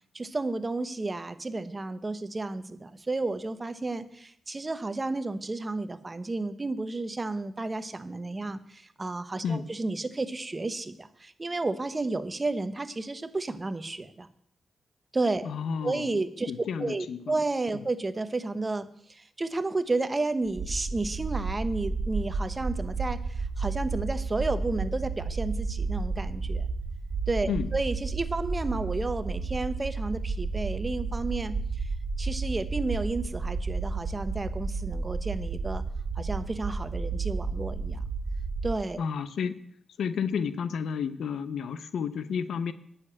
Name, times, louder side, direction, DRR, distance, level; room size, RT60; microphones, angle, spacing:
voice 1, 0.1-14.3 15.1-15.5 15.8-16.5 16.8-26.6 27.3-31.9 32.2-35.8 36.1-38.0 38.6-39.0, right 2 dB, 30° right, 12 dB, 1.0 m, -32 dB
voice 2, 15.4-16.2 16.5-17.4 17.7-17.8 27.5-27.7 39.0-39.6 40.0-42.7, left 6 dB, 85° left, 13 dB, 0.7 m, -31 dB
sound 1, 20.5-38.7, right 4 dB, 60° right, 2.0 m, -32 dB
9.8 x 6.8 x 8.6 m, 0.68 s
cardioid pair, 65°, 0 cm